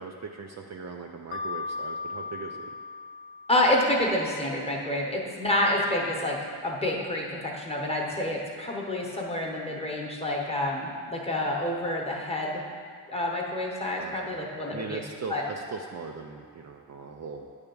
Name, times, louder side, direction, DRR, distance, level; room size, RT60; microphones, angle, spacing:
voice 1, 0.0-2.7 14.0-14.4 14.7-17.5, right 4 dB, 45° right, 2 dB, 0.4 m, -39 dB
Mallet percussion, 1.3-4.1, left 4 dB, 35° left, 0.4 m, -37 dB
voice 2, 3.5-6.4 6.6-12.6 13.1-15.0 15.3-15.4, left 1 dB, 15° left, -2 dB, 0.9 m, -28 dB
9.5 x 3.5 x 6.9 m, 2.2 s
wide cardioid pair, 175°, 40 cm